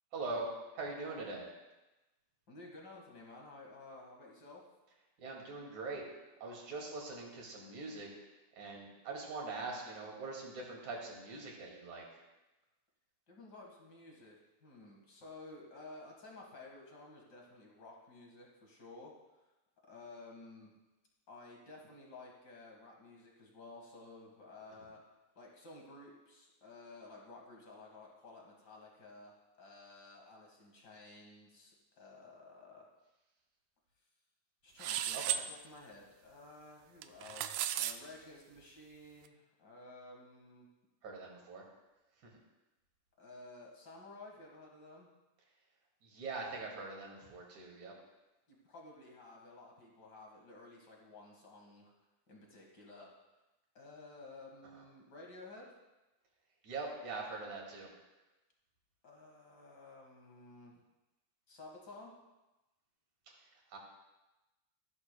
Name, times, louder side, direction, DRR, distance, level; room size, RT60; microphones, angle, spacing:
voice 1, 0.1-1.5 5.2-8.1 8.5-12.2 35.1-35.4 41.0-41.6 42.2-42.4 46.0-47.9 54.7-54.8 56.6-57.9 63.4-63.8, right 3 dB, 60° right, -1 dB, 3.5 m, -43 dB
voice 2, 2.5-4.6 13.3-19.1 19.8-20.7 21.3-25.0 25.3-32.8 34.6-40.7 43.2-45.1 48.6-51.9 52.3-53.1 53.7-55.6 59.0-60.8 61.5-62.1, left 2 dB, 40° left, -1 dB, 1.6 m, -54 dB
sound 1, 34.8-35.4 37.0-37.9, right 11 dB, 80° right, 1.9 m, -35 dB
15.0 x 11.5 x 2.2 m, 1.1 s
omnidirectional pair, 4.0 m